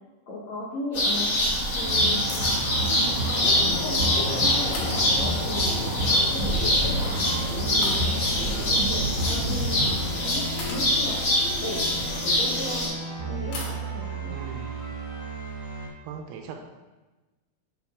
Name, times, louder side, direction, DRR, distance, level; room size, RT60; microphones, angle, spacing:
voice 1, 0.3-1.3 1.7-2.2 2.9-5.6 6.1-11.2 11.6-12.9 13.3-14.4, left 1 dB, 85° left, -6 dB, 1.5 m, -36 dB
sound 1, 0.9-12.9, left 1 dB, 50° left, 1.3 m, -25 dB
sound 2, 1.8-15.9, right 1 dB, 45° right, 1.3 m, -31 dB
sound 3, 2.3-2.7 3.5-4.1 4.7-5.6 6.9-7.1 7.8-8.4 9.9-10.0 10.6-12.7 13.5-13.8, left 3 dB, 70° left, 4.0 m, -39 dB
voice 2, 14.3-14.7 16.0-16.6, right 7 dB, 80° right, 4 dB, 2.9 m, -39 dB
9.5 x 6.5 x 3.7 m, 1.2 s
omnidirectional pair, 5.7 m